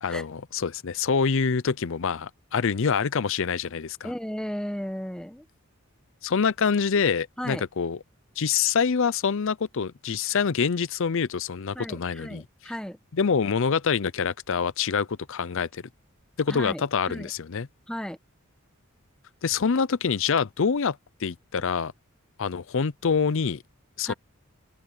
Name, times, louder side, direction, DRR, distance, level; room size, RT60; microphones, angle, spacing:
voice 1, 0.0-4.1 6.2-8.0 8.4-12.4 13.1-15.8 16.4-17.7 19.4-21.9 22.4-23.6 24.0-24.1, left 6 dB, 65° left, 0.6 m, -26 dB
voice 2, 4.0-5.4 7.4-7.6 11.7-13.0 16.5-17.3 17.9-18.2 24.1-24.2, equal, 5° left, 1.1 m, -35 dB
open air
head